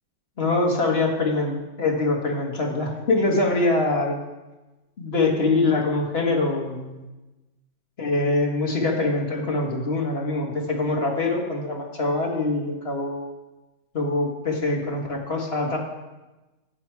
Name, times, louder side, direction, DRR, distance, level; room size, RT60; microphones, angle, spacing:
voice 1, 0.4-4.2 5.0-7.0 8.0-13.3 13.9-15.8, left 2 dB, 35° left, 0 dB, 1.8 m, -24 dB
12.0 x 7.6 x 4.7 m, 1.1 s
omnidirectional pair, 1.8 m